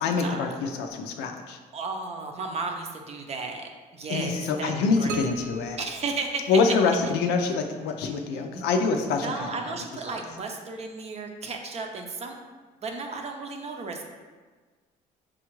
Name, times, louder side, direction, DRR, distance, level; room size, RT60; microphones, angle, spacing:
voice 1, 0.0-1.6 4.1-5.8 6.5-9.8, left 4 dB, 85° left, 5 dB, 0.5 m, -25 dB
voice 2, 1.7-4.7 5.0-5.2 5.8-6.4 8.5-8.7 9.1-12.4 12.8-14.0, right 4 dB, 40° right, 3 dB, 0.6 m, -34 dB
sound 1, 4.3-6.8, left 3 dB, 25° left, 0.6 m, -48 dB
sound 2, 5.1-7.0, right 5 dB, 85° right, 0.4 m, -39 dB
6.0 x 2.3 x 3.0 m, 1.4 s
cardioid pair, 110°, 17 cm